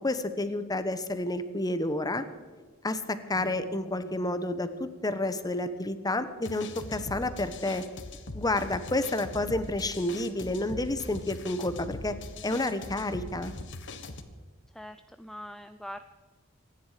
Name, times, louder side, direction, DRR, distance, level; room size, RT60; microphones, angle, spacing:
voice 1, 0.0-2.2 2.8-7.8 8.3-12.2 12.4-13.5, left 2 dB, 20° left, 11 dB, 1.1 m, -30 dB
sound 1, 3.3-6.9, equal, 80° right, 3.6 m, -53 dB
sound 2, 6.4-14.2, left 2 dB, 60° left, 1.5 m, -41 dB
voice 2, 14.7-16.0, equal, ahead, 9 dB, 0.4 m, -42 dB
25.5 x 10.5 x 5.0 m, 1.5 s
head